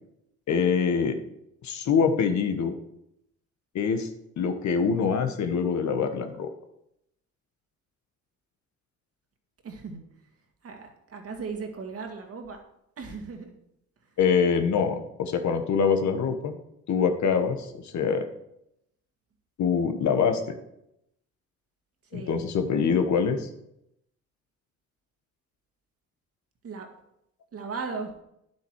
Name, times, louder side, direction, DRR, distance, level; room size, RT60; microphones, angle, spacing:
voice 1, 0.5-1.2 1.6-2.8 3.7-4.1 4.4-6.5 14.2-16.6 16.9-18.3 19.6-20.5 22.1-23.5, left 6 dB, 70° left, 7 dB, 1.3 m, -24 dB
voice 2, 9.6-10.0 10.6-12.6 13.0-13.5 22.1-22.4 26.6-26.9 27.5-28.1, right 4 dB, 50° right, 4 dB, 2.0 m, -37 dB
9.8 x 7.9 x 4.7 m, 0.80 s
cardioid pair, 90°, 30 cm